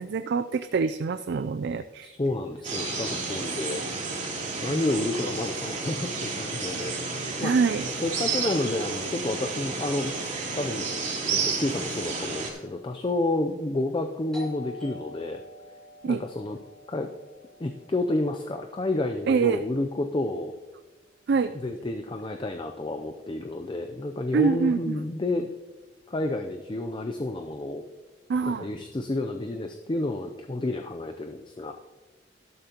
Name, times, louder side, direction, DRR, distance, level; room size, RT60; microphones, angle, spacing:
voice 1, 0.0-2.1 4.7-4.8 7.4-7.8 16.0-16.2 19.3-19.6 21.3-21.5 24.3-25.0 28.3-28.7, right 5 dB, 60° right, 11 dB, 0.4 m, -25 dB
voice 2, 2.0-3.8 4.6-7.5 8.0-10.1 10.5-10.9 11.3-15.4 16.1-16.6 16.9-17.1 17.6-20.5 21.5-25.5 26.1-27.8 28.4-31.7, left 2 dB, 25° left, 5 dB, 0.5 m, -30 dB
sound 1, 2.6-12.5, right 4 dB, 40° right, 3.2 m, -31 dB
Doorbell, 14.3-19.7, left 1 dB, 5° left, 3.0 m, -48 dB
12.5 x 12.0 x 2.9 m, 1.2 s
head